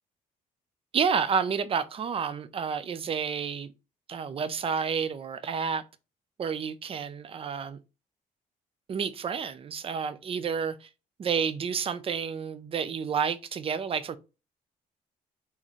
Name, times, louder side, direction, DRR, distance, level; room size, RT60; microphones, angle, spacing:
voice 1, 0.9-3.7 4.1-5.8 6.4-7.8 8.9-10.9 11.2-14.2, right 6 dB, 40° right, 0.5 m, -30 dB
4.2 x 3.6 x 3.1 m
cardioid pair, 110°, 15 cm